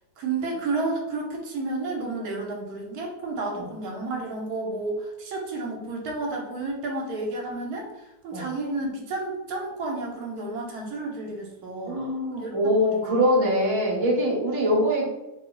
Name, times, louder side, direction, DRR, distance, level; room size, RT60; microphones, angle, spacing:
voice 1, 0.2-13.0, right 3 dB, 75° right, 0 dB, 1.2 m, -31 dB
voice 2, 11.9-15.1, equal, 25° right, -4 dB, 0.7 m, -23 dB
2.7 x 2.4 x 3.7 m, 0.97 s
omnidirectional pair, 1.7 m